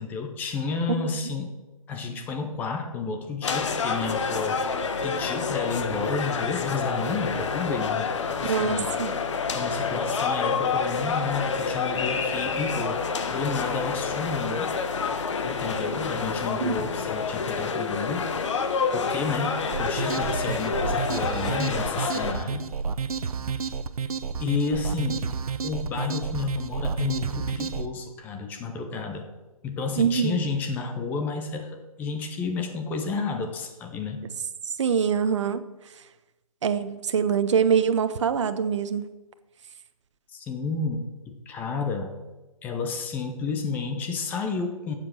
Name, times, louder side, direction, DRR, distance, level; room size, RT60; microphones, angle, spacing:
voice 1, 0.0-1.5 1.9-4.6 5.0-8.1 8.4-8.9 9.5-14.7 15.4-18.3 18.9-22.7 24.4-25.2 25.6-29.3 29.6-34.3 40.3-42.2 42.6-44.9, left 4 dB, 10° left, 5 dB, 0.7 m, -31 dB
sound 1, 3.4-22.3, left 5 dB, 55° left, 1.3 m, -28 dB
voice 2, 8.4-9.1 16.6-16.8 30.0-30.4 34.8-35.7 36.6-39.1, right 7 dB, 55° right, 11 dB, 0.9 m, -24 dB
sound 2, 19.7-27.9, right 6 dB, 80° right, 0.9 m, -30 dB
11.5 x 7.5 x 6.2 m, 1.1 s
hypercardioid pair, 160°, 19 cm